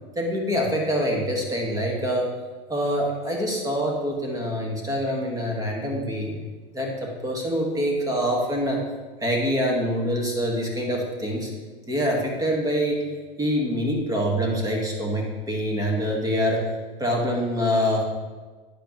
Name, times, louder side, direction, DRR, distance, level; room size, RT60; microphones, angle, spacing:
voice 1, 0.1-2.3 2.7-6.3 6.7-8.8 9.2-11.5 11.9-13.0 13.4-16.6 17.0-18.0, equal, 10° right, -1 dB, 1.6 m, -25 dB
10.0 x 5.0 x 3.1 m, 1.3 s
supercardioid pair, 120°, 29 cm